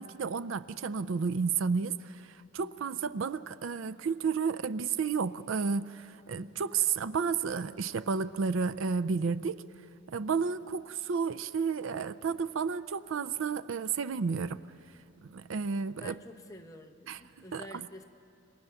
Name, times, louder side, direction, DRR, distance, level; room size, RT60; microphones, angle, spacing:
voice 1, 0.0-9.6 10.1-14.6 15.2-16.2 17.1-17.2 17.5-17.9, right 5 dB, 65° right, 14 dB, 0.4 m, -32 dB
voice 2, 16.0-18.0, left 2 dB, 15° left, 2 dB, 0.9 m, -48 dB
27.5 x 24.5 x 5.8 m, 2.7 s
head